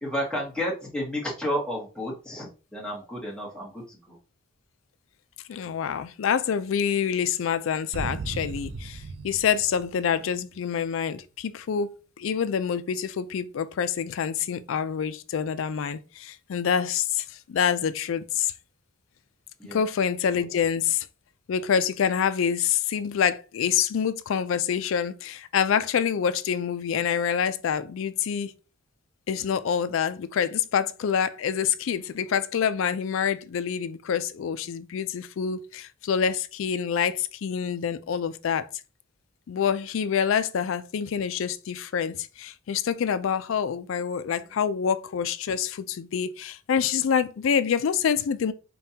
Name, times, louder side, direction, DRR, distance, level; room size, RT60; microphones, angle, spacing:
voice 1, 0.0-4.2 19.6-19.8, equal, 5° left, 1.1 m, -31 dB
voice 2, 5.5-18.5 19.7-21.1 21.5-28.5 29.3-38.7 39.5-48.5, left 7 dB, 65° left, 0.3 m, -26 dB
sound 1, 7.9-10.7, right 3 dB, 65° right, 0.4 m, -37 dB
5.3 x 2.2 x 2.8 m
head